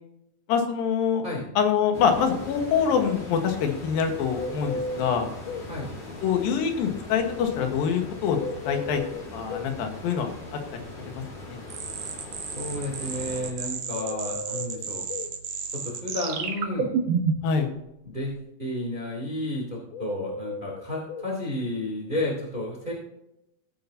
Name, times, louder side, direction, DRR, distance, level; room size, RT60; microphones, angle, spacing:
voice 1, 0.5-1.2 1.6-5.3 6.2-8.4 8.7-9.0 9.3-10.3 11.1-11.2 11.5-11.6 17.4-17.7, left 7 dB, 65° left, 4 dB, 3.0 m, -25 dB
sound 1, 1.9-13.5, left 2 dB, 40° left, 4.7 m, -40 dB
sound 2, 4.3-5.7 8.3-9.7 13.9-15.3 19.9-21.3, left 3 dB, 85° left, 1.8 m, -35 dB
sound 3, 11.7-17.5, right 6 dB, 60° right, 2.5 m, -31 dB
voice 2, 12.5-15.0 15.7-16.9 18.0-18.3 18.6-22.9, left 1 dB, 15° right, -2 dB, 2.6 m, -32 dB
18.0 x 8.8 x 2.8 m, 0.87 s
omnidirectional pair, 4.7 m